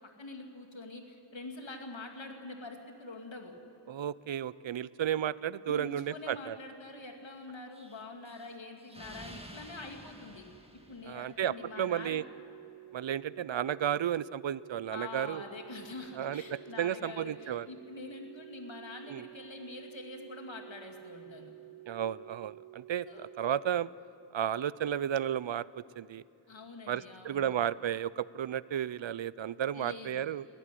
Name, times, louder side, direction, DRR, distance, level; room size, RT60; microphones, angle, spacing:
voice 1, 0.2-3.6 5.7-10.4 10.9-12.2 14.9-21.5 23.0-23.3 26.5-27.5 29.7-30.3, left 3 dB, 75° left, 3 dB, 2.4 m, -45 dB
voice 2, 3.9-6.6 11.1-12.2 12.9-15.4 16.2-17.7 19.1-19.2 21.9-23.9 24.3-25.7 26.0-26.2 26.9-30.5, right 10 dB, 75° right, 20 dB, 0.5 m, -33 dB
Explosion, 7.7-11.6, right 1 dB, 10° right, 2.0 m, -51 dB
sound 1, 11.4-23.4, right 16 dB, 50° left, 7.8 m, -51 dB
21.5 x 16.0 x 9.9 m, 2.8 s
wide cardioid pair, 60°, 46 cm